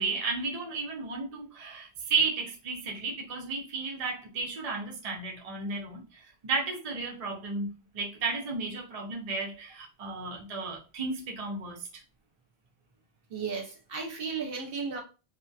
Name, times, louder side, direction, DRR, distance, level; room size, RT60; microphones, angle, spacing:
voice 1, 0.0-11.9, right 4 dB, 45° right, 0.5 m, -33 dB
voice 2, 13.3-15.0, right 5 dB, 65° right, 0.9 m, -34 dB
2.7 x 2.1 x 2.2 m
omnidirectional pair, 1.1 m